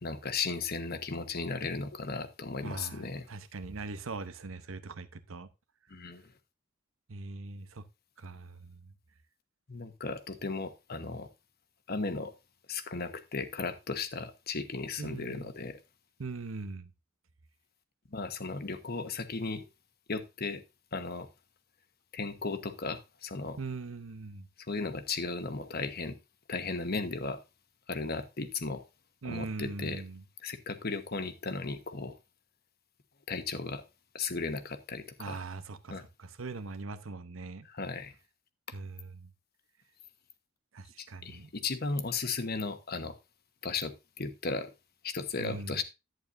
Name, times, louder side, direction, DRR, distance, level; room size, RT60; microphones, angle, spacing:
voice 1, 0.0-3.2 5.9-6.2 9.7-11.3 11.9-12.3 12.7-15.8 18.1-19.6 20.1-20.6 20.9-21.3 22.1-23.6 24.7-26.1 26.5-27.4 27.9-28.8 29.2-30.0 30.4-32.2 33.3-33.8 34.1-35.4 35.9-36.0 37.7-38.1 41.0-43.2 43.6-44.7 45.0-45.8, left 4 dB, 50° left, 1.1 m, -35 dB
voice 2, 2.6-5.5 7.1-7.9 8.2-8.9 15.0-15.5 16.2-16.9 23.6-24.5 29.2-30.2 35.2-37.7 38.7-39.3 40.7-41.5 45.4-45.8, right 3 dB, 85° right, 0.8 m, -41 dB
11.0 x 9.0 x 2.6 m
head